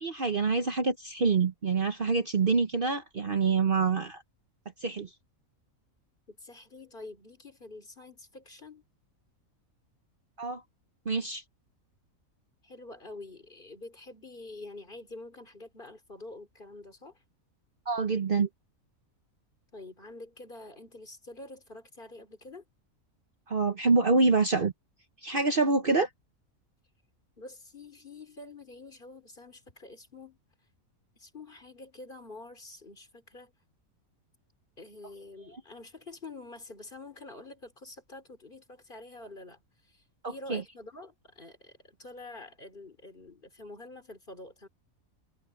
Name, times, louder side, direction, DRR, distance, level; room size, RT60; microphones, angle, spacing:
voice 1, 0.0-4.2 4.8-5.1 10.4-10.6 11.1-11.4 17.9-18.5 23.5-24.7 25.2-26.1 40.2-40.6, right 4 dB, 45° right, 1.1 m, -26 dB
voice 2, 6.3-8.8 12.6-17.2 19.7-22.6 27.4-30.4 31.2-33.5 34.8-40.0 40.3-44.7, left 2 dB, 35° left, 3.6 m, -47 dB
omnidirectional pair, 1.5 m